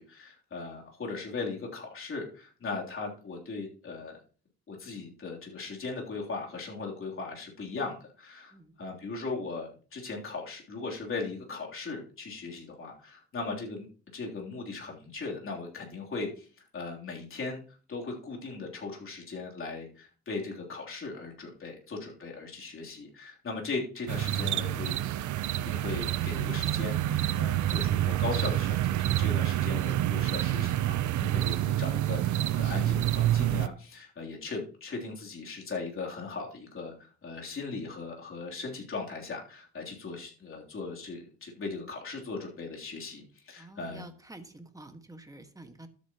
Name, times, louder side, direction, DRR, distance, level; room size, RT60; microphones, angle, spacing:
voice 1, 0.0-4.2 4.7-13.9 14.1-17.6 17.9-25.0 25.5-44.0, left 4 dB, 45° left, -1 dB, 3.3 m, -38 dB
sound 1, 24.1-33.7, right 13 dB, 75° right, 0.7 m, -28 dB
voice 2, 43.6-45.9, right 2 dB, 10° right, 6 dB, 1.7 m, -48 dB
12.5 x 8.6 x 3.0 m, 0.39 s
cardioid pair, 90°, 30 cm